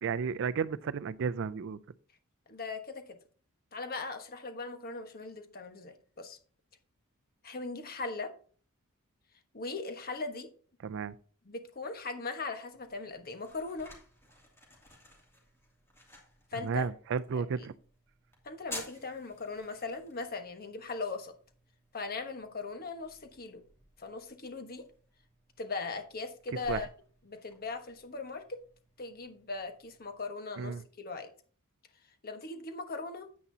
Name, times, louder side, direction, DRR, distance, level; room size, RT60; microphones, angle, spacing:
voice 1, 0.0-1.8 10.8-11.1 16.6-17.7 26.7-26.8 30.6-30.8, right 6 dB, 60° right, 0.4 m, -33 dB
voice 2, 2.5-3.0 3.7-6.4 7.4-8.3 9.5-10.5 11.4-13.9 16.5-16.9 17.3-17.4 18.4-21.3 21.9-23.6 24.0-24.9 25.6-26.9 27.2-28.6 29.0-31.3 32.2-33.3, left 3 dB, 45° left, 1.3 m, -39 dB
sound 1, 12.7-30.3, left 1 dB, 10° left, 2.6 m, -53 dB
9.8 x 8.4 x 2.8 m
head